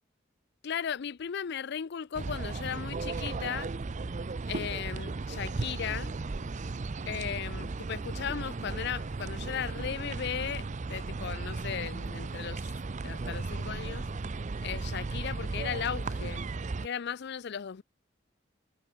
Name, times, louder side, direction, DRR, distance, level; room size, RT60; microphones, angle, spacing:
voice 1, 0.6-3.7 4.5-6.1 7.1-12.6 13.0-14.1 14.6-16.4 16.8-17.8, left 8 dB, 60° left, 0.5 m, -36 dB
sound 1, 2.1-16.9, right 3 dB, 40° right, 0.5 m, -35 dB
head